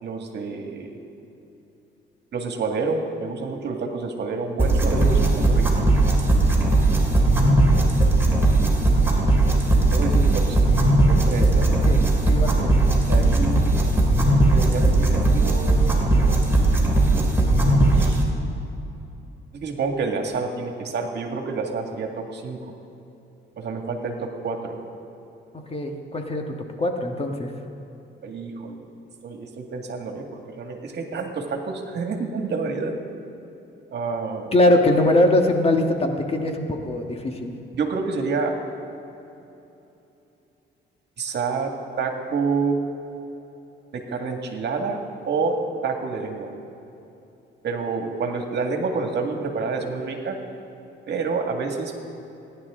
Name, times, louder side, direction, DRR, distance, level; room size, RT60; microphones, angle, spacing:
voice 1, 0.0-1.0 2.3-5.7 9.9-10.7 11.1-11.7 13.1-13.7 14.5-15.8 16.2-16.6 17.9-18.3 19.5-22.6 23.6-24.8 28.2-28.9 29.2-32.9 33.9-34.5 37.7-38.5 41.2-42.8 43.9-46.5 47.6-50.4 51.1-51.9, right 4 dB, 60° right, 3 dB, 1.9 m, -28 dB
sound 1, 4.6-18.2, right 2 dB, 10° right, 3.0 m, -18 dB
voice 2, 11.7-12.7 25.5-27.5 34.5-37.5, left 1 dB, 30° left, 3 dB, 1.6 m, -22 dB
27.5 x 11.0 x 3.7 m, 2.9 s
cardioid pair, 90°, 20 cm